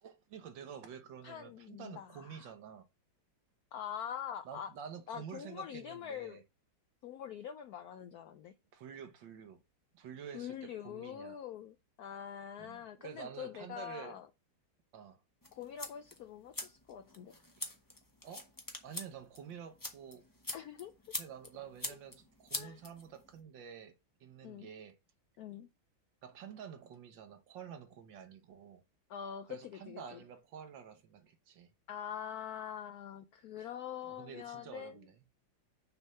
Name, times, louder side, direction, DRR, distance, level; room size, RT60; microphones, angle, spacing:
voice 1, 0.0-2.9 4.5-6.4 8.7-9.6 9.9-11.4 12.6-14.2 14.9-15.2 17.6-17.7 18.2-18.5 18.8-20.3 21.2-23.9 24.2-25.0 26.2-28.8 29.5-31.7 33.6-33.7 34.0-35.2, right 8 dB, 70° right, 1.6 m, -49 dB
voice 2, 1.2-2.5 3.7-4.7 5.1-6.4 7.0-8.5 10.3-14.3 15.5-17.3 20.5-20.9 22.6-22.8 24.4-24.7 25.4-25.7 29.1-30.2 31.9-34.9, left 9 dB, 75° left, 0.8 m, -44 dB
sound 1, 15.4-23.4, left 2 dB, 15° left, 0.6 m, -45 dB
6.3 x 3.5 x 5.5 m
omnidirectional pair, 2.2 m